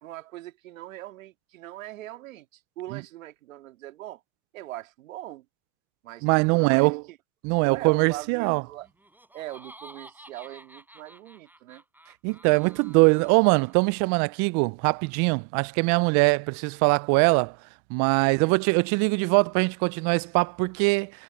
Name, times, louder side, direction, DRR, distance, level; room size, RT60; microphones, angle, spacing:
voice 1, 0.0-4.2 4.5-5.5 6.0-7.2 7.6-8.9 9.3-11.8 18.2-18.6, right 15 dB, 80° right, 2.2 m, -41 dB
voice 2, 6.2-7.0 7.4-8.6 12.2-17.6 17.9-21.1, right 31 dB, 45° right, 0.5 m, -22 dB
Laughter, 8.8-14.1, right 1 dB, 5° right, 4.3 m, -51 dB
hypercardioid pair, 100°, 40 cm